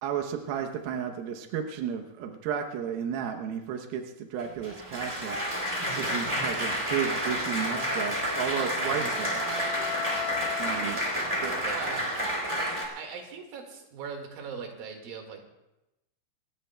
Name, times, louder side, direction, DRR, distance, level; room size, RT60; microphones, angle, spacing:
voice 1, 0.0-5.4 5.9-9.4 10.6-11.0 11.3-11.6, right 8 dB, 80° right, 4 dB, 2.1 m, -33 dB
Applause, 4.4-12.8, equal, 10° right, 2.1 m, -30 dB
Wind instrument woodwind instrument, 7.8-11.7, left 6 dB, 80° left, 3.1 m, -37 dB
voice 2, 11.5-12.3 13.0-15.4, right 5 dB, 60° right, 3 dB, 3.0 m, -40 dB
27.0 x 15.0 x 2.2 m, 0.94 s
omnidirectional pair, 5.5 m